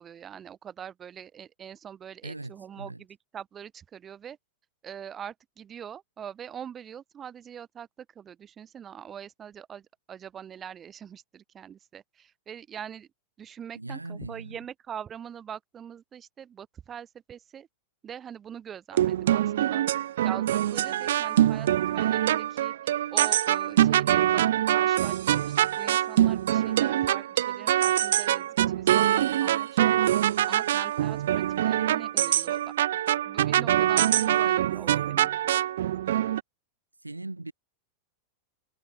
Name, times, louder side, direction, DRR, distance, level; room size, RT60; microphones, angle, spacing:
voice 1, 0.0-4.4 4.8-13.1 13.4-17.7 18.0-19.8 20.2-22.7 23.1-30.1 30.5-32.7 33.2-35.6, right 8 dB, 25° right, 1.6 m, -43 dB
voice 2, 2.2-3.0 13.7-14.6 34.3-34.6 37.0-37.5, right 2 dB, 85° right, 1.3 m, -39 dB
sound 1, 18.9-36.4, right 12 dB, 60° right, 0.3 m, -24 dB
figure-of-eight pair, 90°, 0 cm